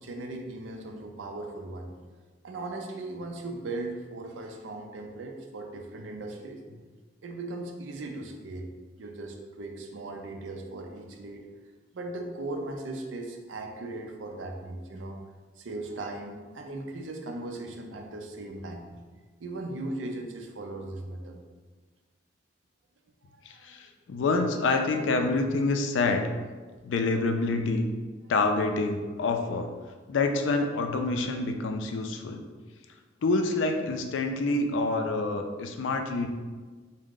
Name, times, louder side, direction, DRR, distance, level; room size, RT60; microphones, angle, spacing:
voice 1, 0.0-1.9 2.4-6.8 7.2-8.7 9.0-11.5 11.9-15.2 15.6-18.9 19.4-21.4 23.3-23.7, right 2 dB, 90° right, 3 dB, 0.5 m, -38 dB
voice 2, 23.5-26.3 26.8-27.9 28.3-29.7 30.1-32.4 33.2-36.3, left 3 dB, 85° left, 5 dB, 0.4 m, -27 dB
3.6 x 2.1 x 3.7 m, 1.4 s
head